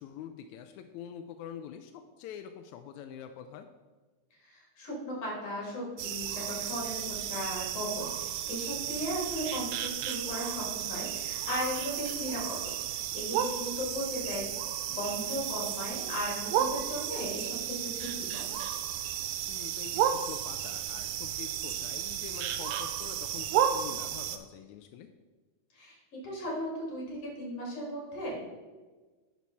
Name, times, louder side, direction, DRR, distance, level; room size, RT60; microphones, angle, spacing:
voice 1, 0.0-3.7 12.3-12.5 19.5-25.1, left 9 dB, 80° left, 7 dB, 1.7 m, -45 dB
voice 2, 4.4-14.5 15.0-18.6 25.7-26.0 26.2-28.4, equal, 50° left, -3 dB, 3.7 m, -37 dB
sound 1, 6.0-24.4, right 10 dB, 85° right, 2.2 m, -33 dB
10.5 x 5.7 x 4.1 m, 1.3 s
omnidirectional pair, 3.8 m